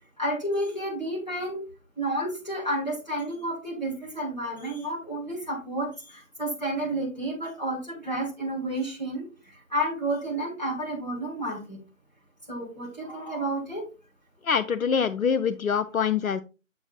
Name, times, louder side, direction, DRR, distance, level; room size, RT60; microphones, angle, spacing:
voice 1, 0.2-1.6 2.0-9.3 9.7-11.8 12.5-13.8, right 1 dB, 30° left, -3 dB, 2.0 m, -31 dB
voice 2, 14.4-16.4, left 6 dB, 85° left, 11 dB, 0.6 m, -25 dB
7.0 x 6.0 x 2.4 m, 0.32 s
figure-of-eight pair, 175°, 40 cm